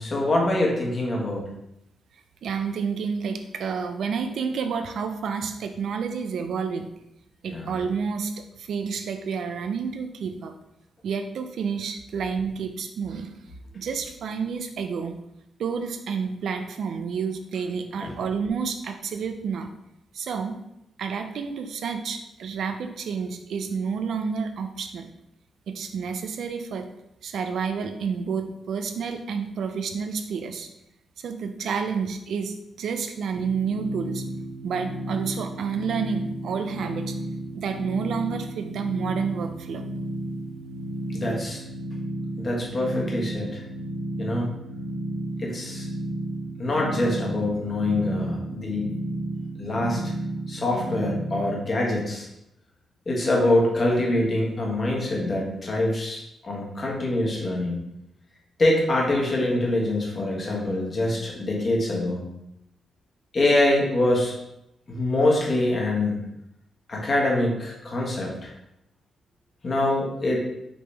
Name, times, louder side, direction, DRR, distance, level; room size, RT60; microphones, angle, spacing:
voice 1, 0.0-1.4 7.5-7.7 18.0-18.1 41.1-41.6 42.4-43.6 44.2-44.5 45.4-45.9 46.6-48.9 49.6-50.0 50.5-52.3 53.1-57.8 58.6-62.2 63.3-64.3 64.9-66.2 66.9-68.5 69.6-70.4, left 1 dB, 35° left, -2 dB, 1.2 m, -24 dB
voice 2, 2.4-6.9 7.4-8.3 8.6-10.5 11.0-13.3 13.7-15.2 15.6-19.7 20.1-20.5 21.0-25.1 25.7-26.9 27.2-30.7 31.2-34.2 34.6-37.1 37.5-39.8, right 6 dB, 70° right, 7 dB, 0.5 m, -29 dB
sound 1, 33.4-51.6, right 1 dB, 50° right, 0.8 m, -33 dB
5.2 x 3.0 x 3.3 m, 0.83 s
cardioid pair, 125°, 0 cm